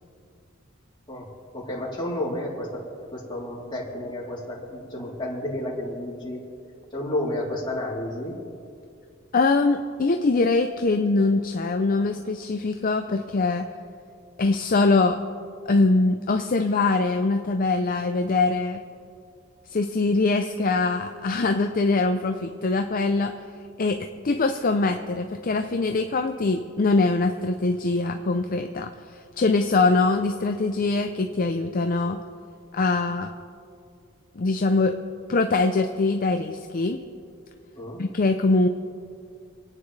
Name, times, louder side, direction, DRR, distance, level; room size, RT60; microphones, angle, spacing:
voice 1, 1.5-2.8 3.1-6.4 6.9-8.3 37.7-38.0, left 1 dB, 25° left, -5 dB, 3.3 m, -31 dB
voice 2, 9.3-13.7 14.4-15.2 15.6-18.8 19.7-23.3 23.8-24.0 24.2-32.2 32.7-33.3 34.4-35.0 35.3-37.0 38.0-38.7, left 3 dB, 45° left, 6 dB, 0.5 m, -23 dB
28.0 x 9.4 x 3.3 m, 2.3 s
head